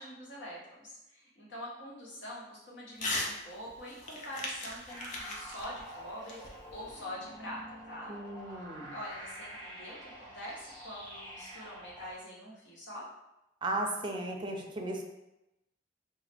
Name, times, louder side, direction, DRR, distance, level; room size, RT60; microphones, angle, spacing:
voice 1, 0.0-8.1 8.5-8.6 8.9-13.1, equal, 70° left, -5 dB, 1.1 m, -45 dB
Crumpling crinkling / Tearing, 3.0-3.3 3.7-7.0, left 2 dB, 40° left, 0.6 m, -38 dB
sound 1, 4.9-12.1, equal, 10° left, 1.1 m, -47 dB
voice 2, 8.1-9.0 13.6-15.1, right 2 dB, 25° right, 1 dB, 0.4 m, -35 dB
3.8 x 2.0 x 3.3 m, 0.92 s
head